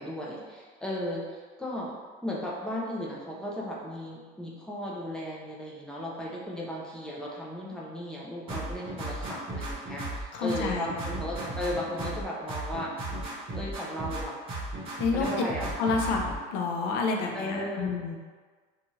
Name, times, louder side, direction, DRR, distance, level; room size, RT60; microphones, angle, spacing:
voice 1, 0.0-1.9 2.2-12.9 13.5-14.3 15.1-15.7 17.3-17.9, left 1 dB, 5° left, -5 dB, 0.4 m, -35 dB
sound 1, 8.5-10.2 10.5-12.2 12.5-14.2 14.5-16.4, right 1 dB, 25° right, 0.8 m, -35 dB
voice 2, 10.3-10.9 15.0-15.4 15.8-16.2 16.5-18.2, left 4 dB, 60° left, 0 dB, 0.5 m, -28 dB
2.8 x 2.3 x 3.0 m, 1.5 s
cardioid pair, 165°, 20 cm